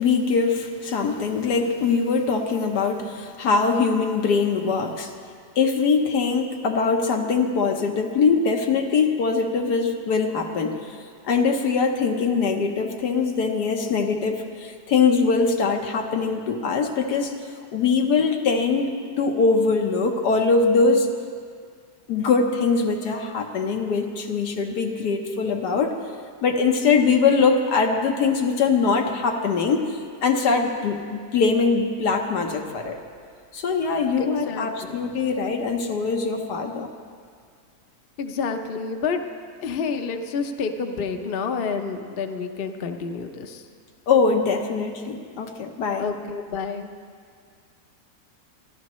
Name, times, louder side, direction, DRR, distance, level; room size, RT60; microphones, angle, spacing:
voice 1, 0.0-5.1 5.6-10.8 11.3-17.3 17.7-21.1 22.1-25.9 26.4-33.0 33.5-36.9 44.1-46.0, left 4 dB, 80° left, 3 dB, 1.6 m, -22 dB
voice 2, 34.2-35.0 38.2-39.2 39.6-43.6 46.0-46.9, left 5 dB, 45° left, 5 dB, 0.8 m, -29 dB
27.0 x 11.5 x 3.1 m, 2.1 s
omnidirectional pair, 1.7 m